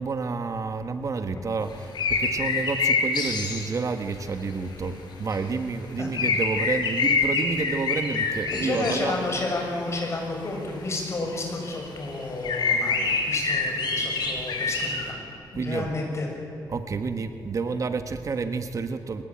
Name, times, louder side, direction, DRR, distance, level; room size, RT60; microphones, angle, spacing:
voice 1, 0.0-9.2 15.5-15.9 16.7-19.2, right 4 dB, 45° right, 8 dB, 1.4 m, -29 dB
sound 1, 1.7-3.7 5.3-5.4 6.1-9.2 9.5-10.1 10.5-10.6 11.2-11.3 11.6-11.8 12.0-12.1 12.4-15.1, left 4 dB, 80° left, 4.8 m, -26 dB
voice 2, 8.5-15.2 15.5-16.3, left 2 dB, 40° left, 1 dB, 6.8 m, -31 dB
24.0 x 20.5 x 8.9 m, 2.7 s
wide cardioid pair, 115°, 7 cm